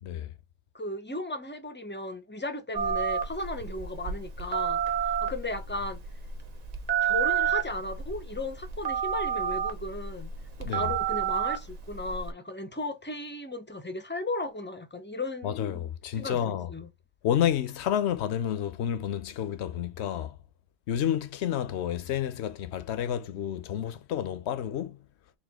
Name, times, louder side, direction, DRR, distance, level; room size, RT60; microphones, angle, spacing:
voice 1, 0.0-0.3 10.7-10.9 15.4-16.7 17.2-20.4 20.9-25.1, left 10 dB, 75° left, 0.9 m, -30 dB
voice 2, 0.7-6.0 7.0-10.3 10.6-15.8 16.2-16.9, left 2 dB, 15° left, 0.5 m, -36 dB
Telephone, 2.7-12.3, right 8 dB, 40° right, 0.7 m, -30 dB
4.3 x 2.5 x 3.5 m
omnidirectional pair, 1.2 m